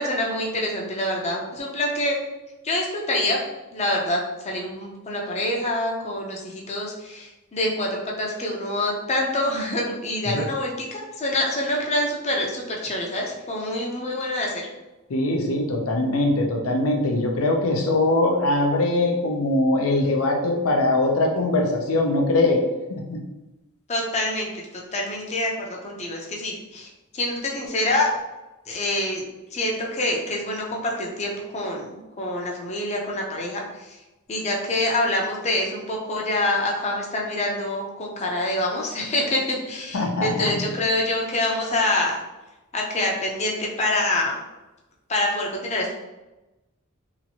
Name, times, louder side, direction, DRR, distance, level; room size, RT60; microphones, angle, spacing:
voice 1, 0.0-2.2 2.6-3.4 3.7-14.6 23.9-26.9 27.1-28.1 28.7-29.2 29.5-34.0 34.3-42.2 42.7-44.4 45.1-45.9, left 1 dB, 30° left, -1 dB, 0.5 m, -26 dB
voice 2, 15.1-22.6 22.9-23.2 39.9-40.7, left 2 dB, 80° left, 2 dB, 0.6 m, -22 dB
2.9 x 2.5 x 2.8 m, 1.0 s
head